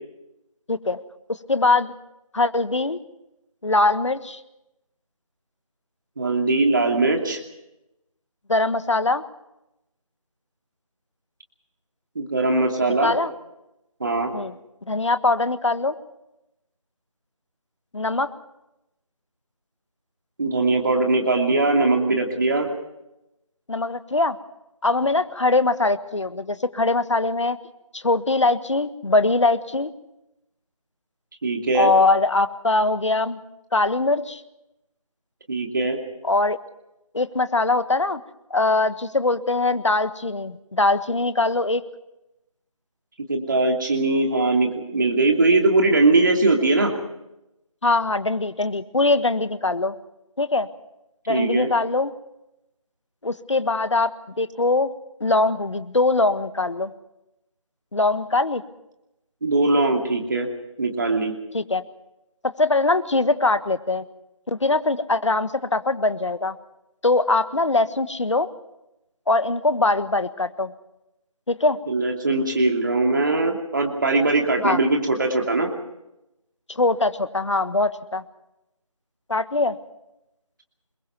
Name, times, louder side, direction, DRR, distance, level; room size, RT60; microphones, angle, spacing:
voice 1, 0.7-1.0 1.3-1.9 2.3-3.0 3.6-4.4 8.5-9.2 13.0-13.3 14.3-14.5 14.9-16.0 17.9-18.3 23.7-24.4 24.8-27.6 27.9-29.9 31.7-33.4 33.7-34.4 36.2-36.6 37.1-38.2 38.5-41.8 47.8-50.0 50.4-50.7 51.3-52.1 53.2-54.9 55.2-56.9 57.9-58.6 61.5-61.8 62.4-64.0 64.5-66.5 67.0-68.5 69.3-70.7 71.5-71.8 74.6-74.8 76.7-78.2 79.3-79.8, left 3 dB, 55° left, 12 dB, 1.6 m, -22 dB
voice 2, 6.2-7.4 12.1-13.2 14.0-14.3 20.4-22.7 31.4-31.9 35.5-36.0 43.3-46.9 51.3-51.7 59.4-60.5 60.8-61.3 71.9-75.7, right 2 dB, 35° right, 2 dB, 2.7 m, -21 dB
28.5 x 22.5 x 4.6 m, 0.88 s
figure-of-eight pair, 170°, 18 cm